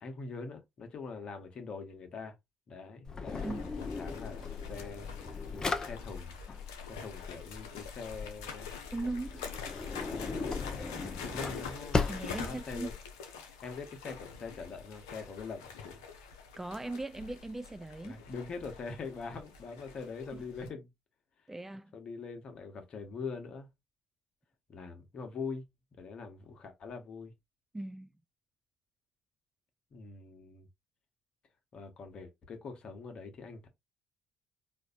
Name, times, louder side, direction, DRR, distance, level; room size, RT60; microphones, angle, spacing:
voice 1, 0.0-2.3 2.7-5.1 5.5-6.4 6.9-8.7 10.2-10.4 10.7-10.8 11.2-12.1 12.4-12.9 13.4-16.0 18.0-20.9 21.9-23.7 24.7-25.7 26.0-27.3 29.9-30.7 31.7-33.7, left 4 dB, 50° left, 1.1 m, -43 dB
Drawer open or close, 3.1-13.0, left 4 dB, 30° left, 0.7 m, -38 dB
sound 1, 3.3-20.7, left 5 dB, 80° left, 0.6 m, -46 dB
voice 2, 8.9-9.4 12.1-12.9 16.6-18.2 20.3-20.4 21.5-21.9 27.7-28.1, right 2 dB, 15° right, 0.4 m, -39 dB
4.4 x 2.6 x 2.4 m
hypercardioid pair, 55°, 2 cm